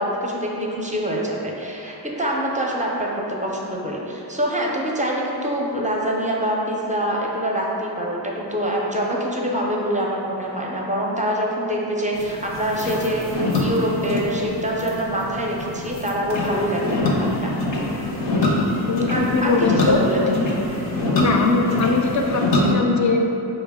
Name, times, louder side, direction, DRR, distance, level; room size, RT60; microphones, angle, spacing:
voice 1, 0.0-17.5 19.1-20.3, equal, 15° right, -2 dB, 0.5 m, -25 dB
sound 1, 12.1-22.7, left 2 dB, 75° left, 0.7 m, -24 dB
voice 2, 18.6-20.0 21.2-23.3, left 3 dB, 45° left, 2 dB, 0.4 m, -21 dB
4.5 x 2.0 x 3.5 m, 3.0 s
cardioid pair, 40°, 44 cm